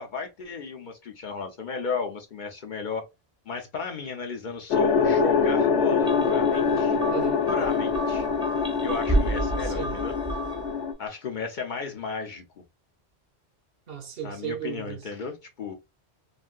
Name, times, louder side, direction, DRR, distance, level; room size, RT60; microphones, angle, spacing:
voice 1, 0.0-3.0 3.5-7.0 7.4-8.3 8.8-10.1 11.0-12.4 14.2-15.7, left 5 dB, 55° left, 0.6 m, -34 dB
sound 1, 4.7-10.9, left 5 dB, 90° left, 0.9 m, -24 dB
sound 2, 6.0-10.8, right 2 dB, 5° right, 0.6 m, -31 dB
voice 2, 7.1-7.4 9.6-10.0 13.9-15.1, right 8 dB, 65° right, 0.9 m, -35 dB
3.1 x 2.6 x 2.2 m
omnidirectional pair, 1.1 m